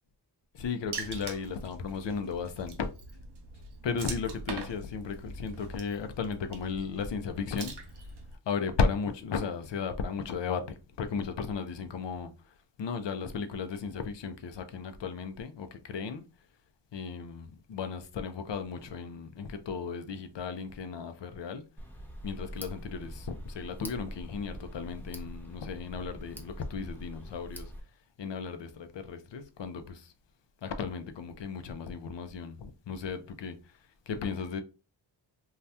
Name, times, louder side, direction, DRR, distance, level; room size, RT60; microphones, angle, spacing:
voice 1, 0.5-2.9 3.8-7.7 8.4-16.2 16.9-21.7 22.2-27.7 28.2-30.1 30.6-34.6, left 5 dB, 75° left, 0.6 m, -35 dB
Water / Splash splatter, 0.9-8.4, right 3 dB, 60° right, 0.8 m, -43 dB
Tick, 21.8-27.8, equal, 5° left, 0.6 m, -44 dB
2.8 x 2.3 x 3.3 m
wide cardioid pair, 75°, 44 cm